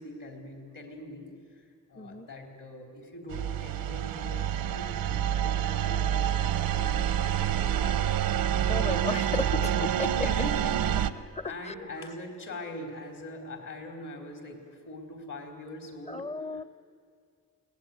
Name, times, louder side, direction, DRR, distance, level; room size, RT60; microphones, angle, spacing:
voice 1, 0.0-8.2 9.5-9.7 10.2-16.2 16.5-16.7, left 1 dB, 65° left, 3 dB, 4.7 m, -42 dB
voice 2, 2.0-2.3 8.7-10.3 11.4-11.9 16.1-16.6, left 3 dB, 20° left, 16 dB, 0.7 m, -34 dB
sound 1, 3.3-11.1, right 10 dB, 90° right, 0.9 m, -27 dB
22.5 x 18.5 x 9.4 m, 2.3 s
cardioid pair, 90°, 34 cm